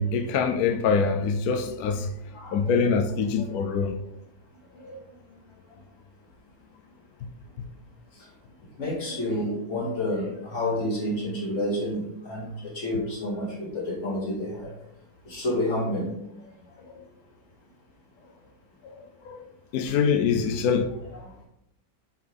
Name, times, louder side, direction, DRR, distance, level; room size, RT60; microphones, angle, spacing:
voice 1, 0.0-2.1 2.5-3.9 19.3-19.4 19.7-20.9, left 5 dB, 70° left, 1.0 m, -24 dB
voice 2, 2.3-2.7 3.4-3.5 4.7-5.0 8.2-8.3 8.8-14.7 15.3-16.2 21.1-21.3, left 1 dB, 45° left, 2.4 m, -29 dB
8.6 x 3.8 x 3.4 m
omnidirectional pair, 1.8 m